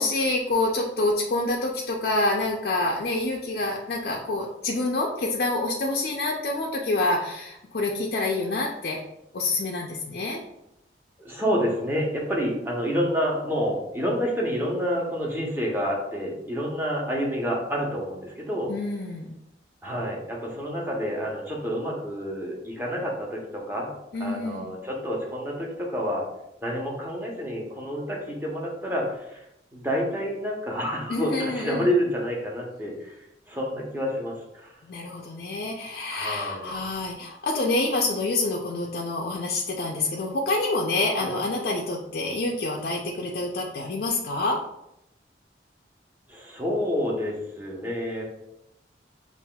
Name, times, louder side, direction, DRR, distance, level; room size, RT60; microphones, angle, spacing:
voice 1, 0.0-9.0 9.3-10.4 18.7-19.3 24.1-24.7 31.1-31.9 34.9-44.6, left 2 dB, 55° left, -2 dB, 0.4 m, -27 dB
voice 2, 11.2-18.7 19.8-23.9 24.2-26.2 26.6-29.5 29.7-34.8 36.1-36.8 41.2-41.3 46.3-48.2, equal, 10° right, -3 dB, 0.7 m, -29 dB
5.5 x 2.4 x 2.2 m, 0.83 s
head